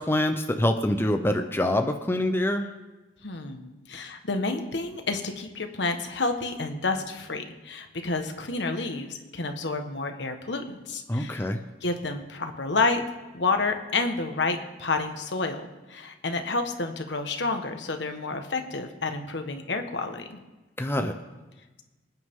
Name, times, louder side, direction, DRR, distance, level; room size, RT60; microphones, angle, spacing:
voice 1, 0.0-2.7 11.1-11.6 20.8-21.1, left 1 dB, 15° left, 6 dB, 0.7 m, -25 dB
voice 2, 3.2-11.5 11.8-13.0 13.3-15.6 15.9-20.4, left 3 dB, 70° left, 6 dB, 1.4 m, -29 dB
25.0 x 9.6 x 3.7 m, 1.1 s
head